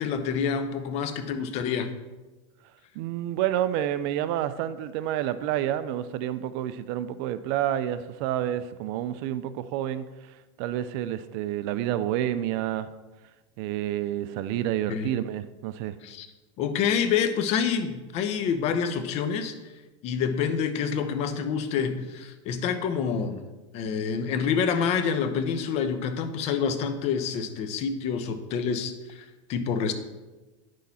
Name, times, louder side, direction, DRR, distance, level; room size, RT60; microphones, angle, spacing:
voice 1, 0.0-1.9 14.9-15.1 16.0-16.3 16.6-19.5 20.0-23.4 23.7-29.9, left 6 dB, 40° left, 9 dB, 0.9 m, -27 dB
voice 2, 3.0-10.1 10.6-12.9 13.6-15.9, right 12 dB, 50° right, 13 dB, 0.5 m, -29 dB
9.3 x 6.4 x 4.2 m, 1.1 s
supercardioid pair, 140°, 16 cm